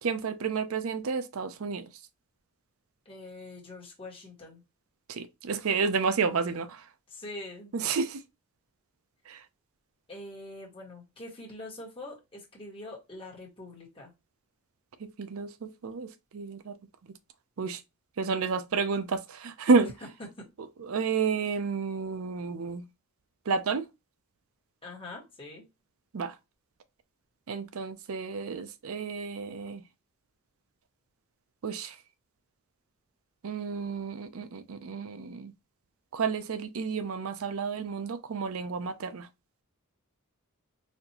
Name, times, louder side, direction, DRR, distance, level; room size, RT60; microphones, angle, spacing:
voice 1, 0.0-1.9 5.1-6.8 7.7-8.2 9.3-9.4 15.0-16.7 17.6-17.8 18.2-19.9 20.9-22.8 23.5-23.8 26.1-26.3 27.5-29.8 31.6-31.9 33.4-35.5 36.1-39.3, right 5 dB, 65° right, 0.5 m, -30 dB
voice 2, 3.0-4.6 7.1-7.7 10.1-14.1 19.8-19.9 20.2-20.5 24.8-25.6, left 2 dB, 25° left, 1.4 m, -44 dB
4.2 x 2.6 x 2.9 m
head